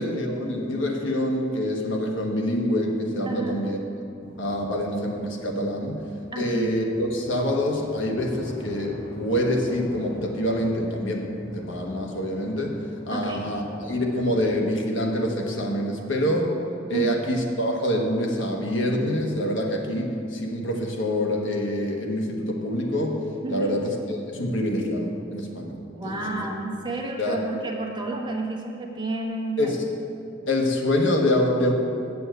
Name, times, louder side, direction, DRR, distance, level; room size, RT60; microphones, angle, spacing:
voice 1, 0.0-3.8 4.4-6.0 6.4-16.6 16.9-23.2 23.5-26.4 27.2-27.4 29.6-29.8 30.5-31.7, left 1 dB, 75° left, 1 dB, 1.3 m, -26 dB
voice 2, 3.3-3.7 6.3-6.7 13.1-13.4 16.9-17.2 23.4-23.8 25.9-29.8, right 2 dB, 25° right, 0 dB, 1.1 m, -30 dB
sound 1, 4.2-14.5, equal, 40° left, 2.5 m, -43 dB
7.8 x 7.1 x 8.0 m, 2.6 s
head